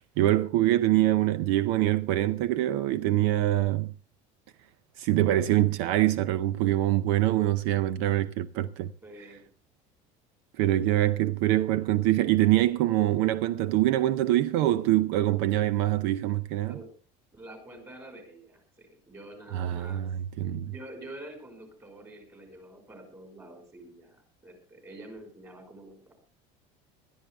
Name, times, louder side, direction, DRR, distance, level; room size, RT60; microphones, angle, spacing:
voice 1, 0.0-3.9 5.0-8.9 10.6-16.8 19.5-20.7, right 14 dB, 70° right, 0.6 m, -24 dB
voice 2, 9.0-9.4 16.6-16.9 17.3-20.0 20.7-26.1, right 1 dB, 20° right, 5.2 m, -47 dB
20.5 x 13.0 x 3.5 m
cardioid pair, 170°, 15 cm